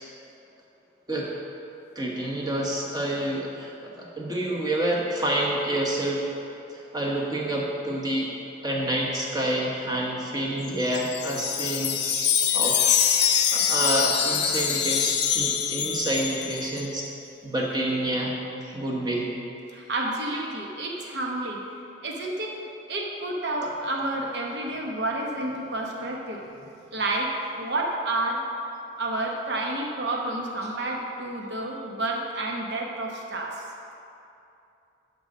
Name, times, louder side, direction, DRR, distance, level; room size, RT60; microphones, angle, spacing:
voice 1, 1.9-6.2 6.7-8.3 8.6-12.8 13.2-17.0 17.4-19.3, right 1 dB, 20° right, -3 dB, 1.1 m, -28 dB
Wind chime, 10.7-16.9, left 8 dB, 60° left, 0.6 m, -24 dB
voice 2, 19.7-21.6 22.0-22.6 22.9-26.4 26.9-28.5 29.0-33.6, right 2 dB, 60° right, -1 dB, 1.0 m, -30 dB
11.0 x 3.9 x 5.5 m, 2.7 s
head